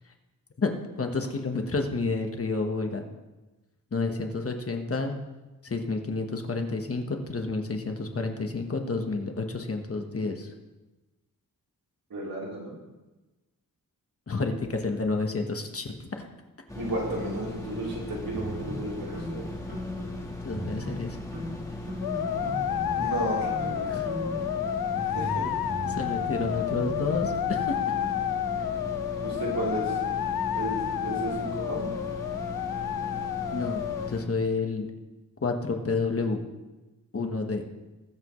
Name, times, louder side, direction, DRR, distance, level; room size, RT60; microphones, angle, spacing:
voice 1, 0.6-3.0 3.9-5.2 5.6-10.5 14.3-16.3 20.4-21.2 23.8-24.1 25.8-27.8 33.5-34.9 35.4-36.4 37.1-37.6, left 3 dB, 40° left, 4 dB, 1.2 m, -30 dB
voice 2, 12.1-12.7 16.7-19.5 23.0-23.9 25.1-25.5 29.2-30.0 30.5-31.9, right 1 dB, 75° right, -5 dB, 3.8 m, -33 dB
sound 1, 16.7-34.2, left 2 dB, 10° left, 1.6 m, -38 dB
sound 2, 18.3-20.2 20.5-21.1 21.3-23.2 23.5-23.8 24.0-27.1, right 1 dB, 45° right, 3.0 m, -38 dB
sound 3, 22.0-34.1, left 10 dB, 85° left, 0.5 m, -30 dB
20.5 x 7.6 x 3.1 m, 1.1 s
wide cardioid pair, 140°, 35 cm